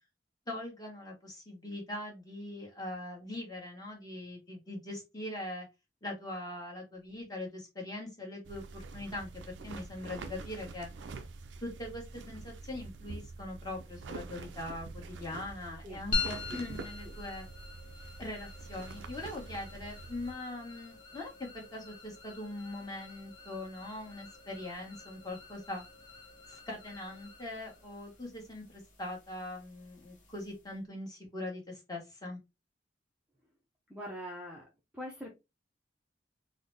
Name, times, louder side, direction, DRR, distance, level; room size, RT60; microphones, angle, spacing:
voice 1, 0.5-5.7 6.0-10.9 11.6-17.5 18.2-25.8 26.5-32.4, left 1 dB, 20° left, -1 dB, 1.3 m, -42 dB
sound 1, 8.4-20.3, right 3 dB, 80° right, 0.4 m, -46 dB
sound 2, 16.1-30.8, left 3 dB, 45° left, 1.0 m, -44 dB
voice 2, 33.9-34.7 34.9-35.3, equal, 5° right, -2 dB, 0.6 m, -42 dB
3.9 x 2.1 x 3.2 m, 0.24 s
head